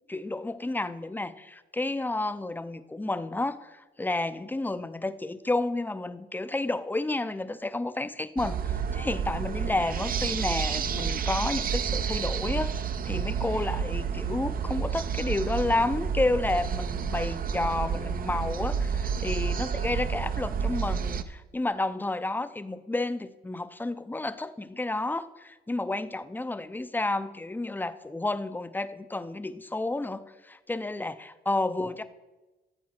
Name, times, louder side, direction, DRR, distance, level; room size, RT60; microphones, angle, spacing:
voice 1, 0.1-32.0, left 2 dB, 10° left, 12 dB, 0.5 m, -31 dB
sound 1, 8.4-21.2, right 6 dB, 45° right, 0.6 m, -30 dB
13.0 x 7.2 x 4.4 m, 1.1 s
cardioid pair, 90°, 20 cm